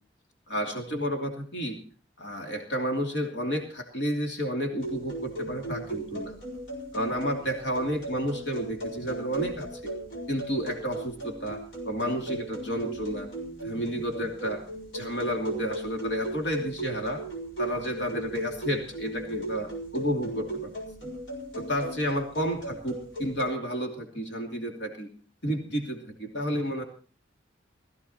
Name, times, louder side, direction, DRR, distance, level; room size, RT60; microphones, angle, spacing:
voice 1, 0.5-1.8 2.2-6.4 6.9-9.9 10.3-13.3 13.6-14.6 14.9-17.2 17.6-20.7 21.0-21.1 21.6-25.1 25.4-26.8, equal, 70° left, 3 dB, 2.8 m, -31 dB
sound 1, 4.8-23.5, right 2 dB, 90° left, 4.7 m, -37 dB
17.0 x 14.5 x 4.3 m, 0.37 s
head